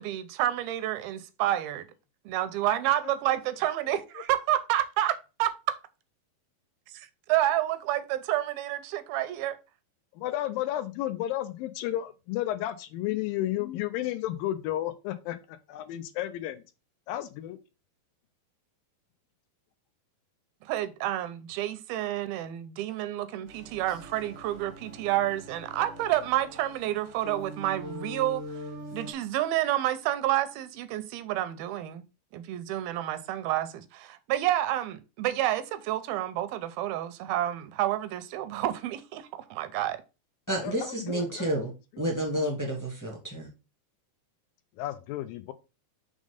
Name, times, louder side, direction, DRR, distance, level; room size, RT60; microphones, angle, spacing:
voice 1, 0.0-1.8 2.3-5.5 6.9-9.6 20.6-28.4 28.9-32.0 32.3-40.0, right 13 dB, 85° right, 2.5 m, -29 dB
voice 2, 3.0-3.4 3.9-4.0 10.1-16.6 17.1-17.6 40.6-41.5 44.8-45.5, left 14 dB, 80° left, 2.3 m, -33 dB
sound 1, 23.5-29.1, equal, 50° right, 0.8 m, -43 dB
voice 3, 40.5-43.5, right 1 dB, 10° left, 1.1 m, -30 dB
6.3 x 3.6 x 5.0 m
omnidirectional pair, 4.3 m